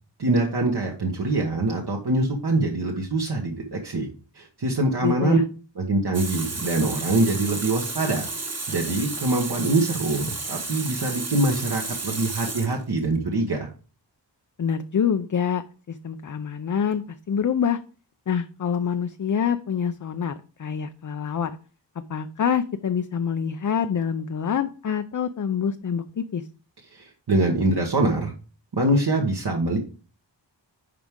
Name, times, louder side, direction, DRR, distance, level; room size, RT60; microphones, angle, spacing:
voice 1, 0.2-4.1 4.3-5.4 5.8-8.2 8.7-13.7 26.9-28.3 28.7-29.8, right 2 dB, 65° right, 0 dB, 1.4 m, -24 dB
voice 2, 5.0-5.4 14.6-17.8 18.3-21.6 22.1-26.5, left 7 dB, 45° left, 9 dB, 0.5 m, -26 dB
Water tap faucet, 6.1-13.2, right 3 dB, 35° right, 1.2 m, -32 dB
10.5 x 4.8 x 3.7 m, 0.37 s
wide cardioid pair, 85°, 43 cm